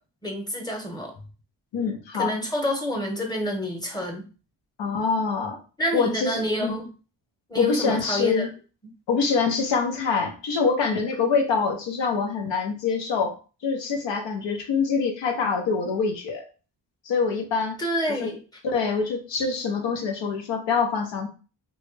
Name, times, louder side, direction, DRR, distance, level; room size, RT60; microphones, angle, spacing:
voice 1, 0.2-1.1 2.1-4.2 5.8-6.8 7.5-8.5 17.8-18.4, left 1 dB, 10° left, 2 dB, 0.9 m, -28 dB
voice 2, 1.7-2.3 4.8-5.6 5.9-6.8 7.6-8.5 9.1-13.3 13.6-16.4 17.0-17.8 18.2-18.3 18.6-21.3, left 5 dB, 85° left, 5 dB, 0.8 m, -25 dB
3.0 x 2.4 x 3.2 m, 0.34 s
cardioid pair, 80°, 43 cm